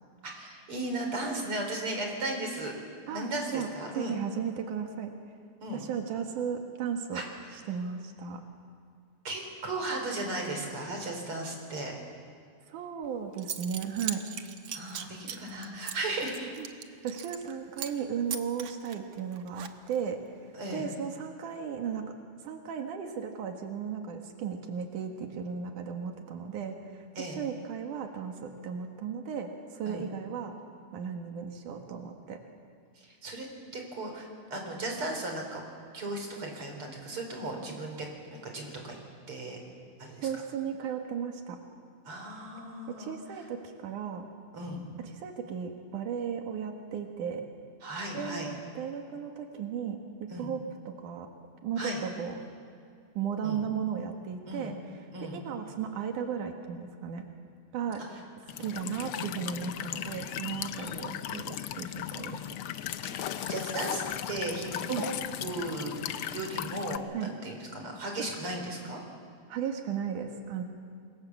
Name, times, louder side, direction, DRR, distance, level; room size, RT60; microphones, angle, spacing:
voice 1, 0.3-2.7 3.1-4.2 5.6-5.8 7.1-7.2 9.2-11.9 14.7-16.5 20.5-20.8 27.2-27.4 29.9-30.1 33.0-33.5 33.7-35.6 35.9-39.0 39.3-39.6 40.0-40.3 42.1-43.1 44.5-44.8 47.8-48.5 50.3-50.5 51.8-52.0 53.4-53.6 54.5-54.7 55.1-55.4 58.1-58.2 63.0-63.1 63.5-64.0 64.3-65.1 65.4-66.0 66.3-69.0, right 2 dB, 45° right, 2 dB, 4.9 m, -36 dB
voice 2, 3.1-5.1 5.7-7.2 7.7-8.4 12.7-14.2 16.6-16.7 17.0-20.2 20.7-22.1 22.4-30.5 30.9-32.4 40.2-41.6 42.9-44.3 45.0-47.4 48.1-51.3 51.6-52.3 53.1-54.8 55.2-57.2 57.7-58.0 58.6-62.4 64.9-65.0 67.1-67.3 68.2-68.3 69.5-70.6, right 7 dB, 90° right, 4 dB, 3.2 m, -35 dB
Zipper (clothing) / Coin (dropping), 13.0-13.1 13.4-17.5 17.8-18.0 18.3-20.1, right 9 dB, 60° right, 1.8 m, -39 dB
Walk footsteps / Chirp tweet / Stream, 58.5-67.0, left 11 dB, 75° left, 1.3 m, -37 dB
27.5 x 22.5 x 7.4 m, 2.4 s
omnidirectional pair, 3.5 m